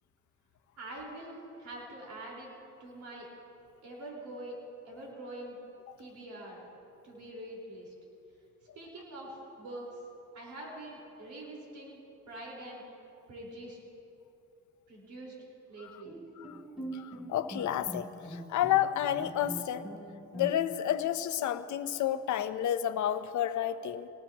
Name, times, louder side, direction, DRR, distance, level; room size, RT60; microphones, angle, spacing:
voice 1, 0.8-2.5 2.8-3.3 3.8-4.6 4.8-5.6 6.0-6.7 7.0-7.9 8.7-10.0 10.3-12.0 12.3-12.8 13.3-13.8 14.9-15.3 15.7-16.2, right 1 dB, 70° right, -4 dB, 4.7 m, -44 dB
Bowed string instrument, 16.0-20.9, equal, ahead, 3.9 m, -43 dB
voice 2, 16.9-19.9 20.3-24.1, left 11 dB, 75° left, 11 dB, 0.9 m, -30 dB
24.5 x 19.0 x 3.0 m, 2.8 s
cardioid pair, 90°, 30 cm